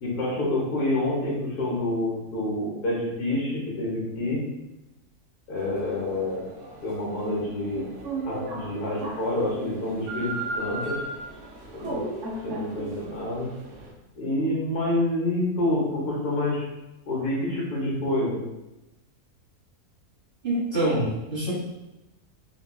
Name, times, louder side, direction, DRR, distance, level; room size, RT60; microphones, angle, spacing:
voice 1, 0.0-4.4 5.5-6.5 6.8-7.9 8.2-10.9 11.7-12.0 12.4-13.5 14.2-16.6 17.1-18.4, left 1 dB, 75° left, -5 dB, 1.4 m, -27 dB
sound 1, 5.6-13.9, right 2 dB, 65° right, 0.8 m, -36 dB
voice 2, 20.4-21.5, right 1 dB, 40° right, -10 dB, 1.3 m, -25 dB
3.9 x 2.2 x 2.2 m, 0.95 s
omnidirectional pair, 1.6 m